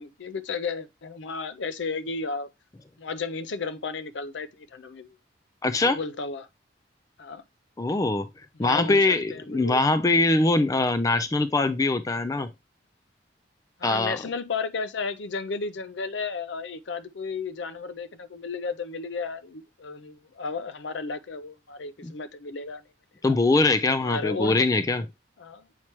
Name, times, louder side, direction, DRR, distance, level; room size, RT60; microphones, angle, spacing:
voice 1, 0.0-2.5 3.0-5.2 5.8-6.5 7.2-7.4 8.6-9.8 13.8-22.8 23.2-23.3 24.0-24.7 25.4-25.7, left 4 dB, 70° left, 0.5 m, -33 dB
voice 2, 5.6-6.0 7.8-8.3 8.6-12.5 13.8-14.2 22.0-22.1 23.2-25.0, left 2 dB, 20° left, 0.3 m, -22 dB
7.2 x 4.5 x 3.0 m
head